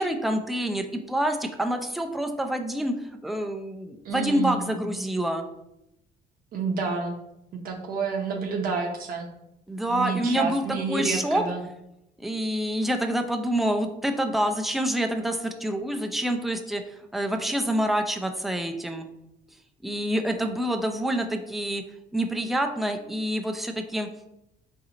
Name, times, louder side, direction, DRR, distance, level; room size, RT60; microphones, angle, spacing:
voice 1, 0.0-5.4 9.7-11.4 12.2-19.1 19.8-21.8 22.1-24.1, right 1 dB, ahead, 5 dB, 0.3 m, -27 dB
voice 2, 4.0-4.7 6.5-7.2 7.6-9.3 9.9-11.6, right 5 dB, 60° right, 1 dB, 0.6 m, -29 dB
3.8 x 2.6 x 2.8 m, 0.85 s
cardioid pair, 110°, 17 cm